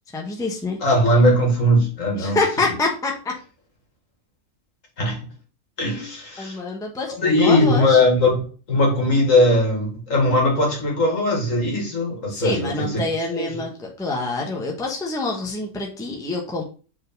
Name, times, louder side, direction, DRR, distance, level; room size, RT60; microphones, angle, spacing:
voice 1, 0.1-0.8 2.2-3.3 6.4-8.0 12.3-16.6, left 3 dB, 5° left, 1.1 m, -26 dB
voice 2, 0.8-2.4 5.0-5.2 5.8-6.6 7.1-13.0 13.3-13.6, left 1 dB, 55° left, 2.4 m, -19 dB
4.8 x 4.5 x 5.3 m
omnidirectional pair, 1.6 m